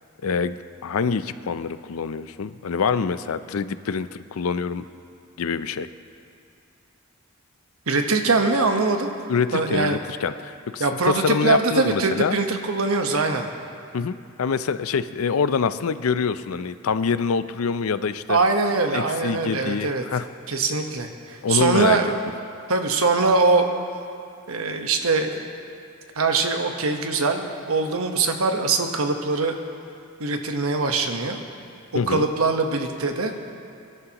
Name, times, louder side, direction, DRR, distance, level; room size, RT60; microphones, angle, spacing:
voice 1, 0.2-0.6 0.8-4.8 5.4-5.9 9.3-12.4 13.9-18.4 18.9-20.3 21.4-22.0 31.9-32.3, left 5 dB, 75° left, 13 dB, 0.5 m, -25 dB
voice 2, 7.9-9.1 9.5-10.0 10.8-13.5 18.3-20.0 20.5-22.2 22.7-23.7 24.5-25.5 26.1-29.5 30.2-31.4 32.1-33.3, right 3 dB, 85° right, 4 dB, 1.2 m, -22 dB
26.5 x 11.5 x 3.0 m, 2.5 s
head